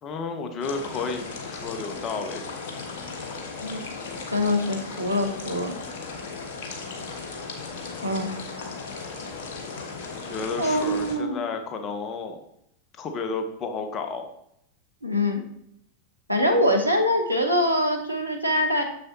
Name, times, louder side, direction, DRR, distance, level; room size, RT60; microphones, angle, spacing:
voice 1, 0.0-2.4 10.2-12.4 13.0-14.3, left 4 dB, 30° left, 6 dB, 0.8 m, -32 dB
sound 1, 0.6-11.2, left 4 dB, 50° left, 1.3 m, -36 dB
voice 2, 4.3-5.7 8.0-8.4 10.6-11.4 15.0-15.4 16.3-18.8, left 1 dB, 90° right, 2 dB, 1.0 m, -24 dB
6.8 x 6.5 x 2.8 m, 0.74 s
figure-of-eight pair, 90°, 0 cm